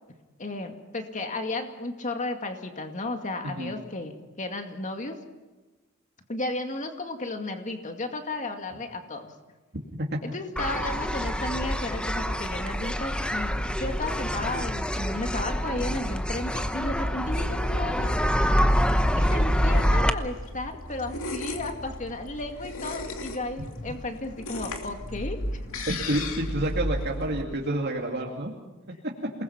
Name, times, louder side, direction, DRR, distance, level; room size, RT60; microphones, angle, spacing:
voice 1, 0.4-4.1 4.4-5.2 6.3-9.3 10.2-18.1 19.2-25.6, left 2 dB, 35° left, 5 dB, 2.3 m, -34 dB
sound 1, 10.6-20.1, equal, 5° left, 1.0 m, -26 dB
sound 2, 19.3-27.4, left 1 dB, 75° left, 2.7 m, -35 dB
voice 2, 25.9-28.5 29.0-29.3, right 1 dB, 50° right, -1 dB, 2.4 m, -29 dB
28.0 x 20.0 x 5.9 m, 1.2 s
head